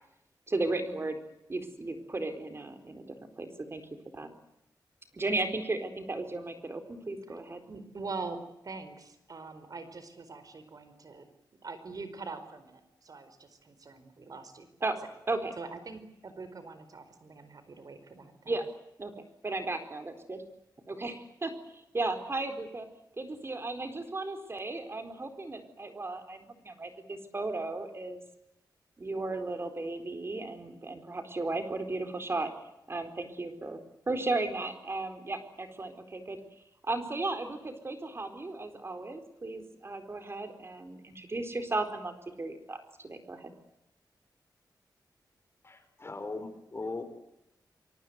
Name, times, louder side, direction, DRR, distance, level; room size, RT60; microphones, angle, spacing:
voice 1, 0.5-1.2 1.5-3.8 4.1-4.3 5.1-7.6 14.8-15.0 15.3-15.5 18.5-18.6 19.0-19.1 19.4-20.4 20.9-22.9 23.2-28.2 29.0-32.5 32.9-33.8 34.1-36.4 36.8-43.5, right 2 dB, 35° right, 8 dB, 4.3 m, -35 dB
voice 2, 7.7-11.2 11.6-14.9 15.6-18.5, right 4 dB, 55° right, 11 dB, 4.6 m, -43 dB
voice 3, 45.6-47.0, left 3 dB, 35° left, 9 dB, 4.9 m, -39 dB
25.5 x 24.5 x 8.1 m, 0.83 s
wide cardioid pair, 110°, 8 cm